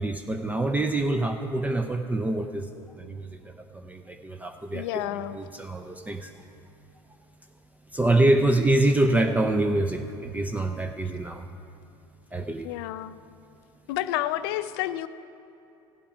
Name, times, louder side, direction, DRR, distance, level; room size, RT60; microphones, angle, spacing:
voice 1, 0.0-6.3 7.9-11.5 12.3-12.7, right 2 dB, 10° right, 6 dB, 0.6 m, -26 dB
voice 2, 4.7-5.4 12.6-13.2 13.9-15.1, left 14 dB, 70° left, 13 dB, 0.5 m, -30 dB
15.5 x 8.5 x 4.9 m, 2.7 s
hypercardioid pair, 80°, 13 cm